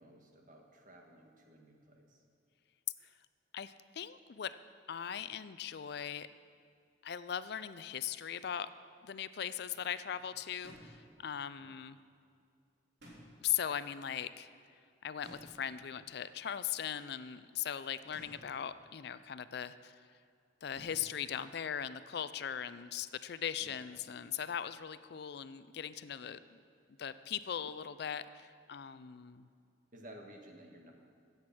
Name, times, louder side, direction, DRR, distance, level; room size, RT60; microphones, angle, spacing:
voice 1, 0.0-2.2 9.8-10.2 11.6-11.8 23.6-23.8 29.9-30.9, right 1 dB, 45° right, 2 dB, 1.7 m, -55 dB
voice 2, 3.5-4.6 4.9-6.3 7.0-8.7 9.0-12.0 13.4-14.5 15.0-20.0 20.6-26.4 27.0-29.5, left 9 dB, 60° left, 14 dB, 0.4 m, -39 dB
sound 1, 10.6-11.1 13.0-13.6 15.2-15.8 18.1-18.6 20.7-21.2, equal, 70° right, 3.5 m, -55 dB
16.0 x 8.1 x 6.1 m, 2.2 s
head